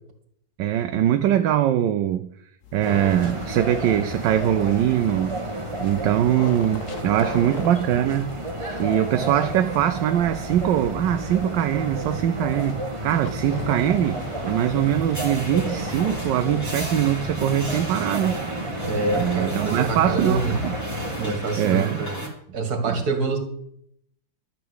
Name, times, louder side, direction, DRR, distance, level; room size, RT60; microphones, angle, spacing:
voice 1, 0.6-2.3 2.7-5.4 5.8-8.3 8.8-18.3 19.1-20.8 21.3-22.1 22.9-23.0, right 11 dB, 75° right, 9 dB, 1.3 m, -22 dB
sound 1, 2.6-17.9, left 6 dB, 45° left, 1.5 m, -41 dB
sound 2, 2.8-21.3, right 1 dB, 15° right, 1.5 m, -31 dB
sound 3, 13.7-22.3, equal, 10° left, 2.7 m, -36 dB
voice 2, 18.8-20.5 21.2-22.2 22.5-23.4, right 3 dB, 50° right, 7 dB, 2.5 m, -26 dB
12.5 x 6.1 x 8.1 m, 0.70 s
omnidirectional pair, 2.1 m